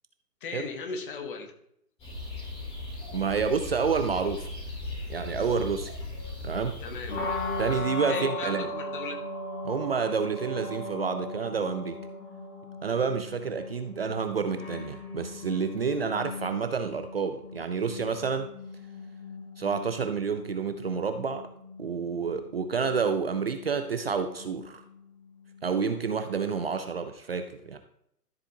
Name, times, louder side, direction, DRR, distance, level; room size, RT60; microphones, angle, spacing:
voice 1, 0.4-1.5 6.8-7.2 8.1-9.2, left 4 dB, 30° left, 5 dB, 1.5 m, -37 dB
sound 1, 2.0-7.8, left 2 dB, 10° left, 2.9 m, -38 dB
voice 2, 3.1-4.5 5.1-5.9 6.4-6.8 7.6-8.7 9.6-12.0 12.8-18.5 19.6-21.4 21.8-24.8 25.6-27.8, right 5 dB, 40° right, 7 dB, 0.6 m, -29 dB
sound 2, 7.1-26.9, left 1 dB, 55° left, 4.4 m, -39 dB
13.0 x 7.6 x 2.8 m, 0.73 s
figure-of-eight pair, 145°, 49 cm